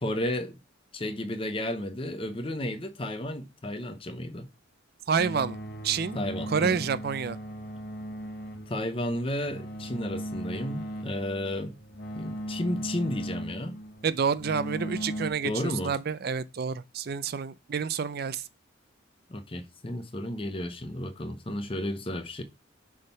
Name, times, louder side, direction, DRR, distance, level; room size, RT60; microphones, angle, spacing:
voice 1, 0.0-0.6 0.9-4.5 6.1-6.8 8.7-11.7 12.1-13.7 15.4-15.9 19.3-22.4, left 1 dB, 25° left, 0.7 m, -33 dB
voice 2, 5.1-5.6 5.8-6.2 6.5-7.4 14.0-18.4, right 6 dB, 50° right, 0.4 m, -28 dB
sound 1, 5.2-15.3, equal, 50° left, 1.1 m, -38 dB
6.4 x 3.7 x 5.6 m
head